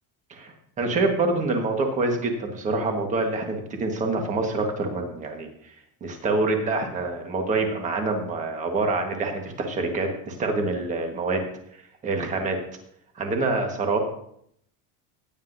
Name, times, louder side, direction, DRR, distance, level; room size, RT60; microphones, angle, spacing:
voice 1, 0.3-5.5 6.0-11.4 12.0-12.6 13.2-14.0, right 3 dB, 20° right, 3 dB, 1.4 m, -26 dB
16.0 x 9.7 x 2.7 m, 0.68 s
cardioid pair, 180°, 37 cm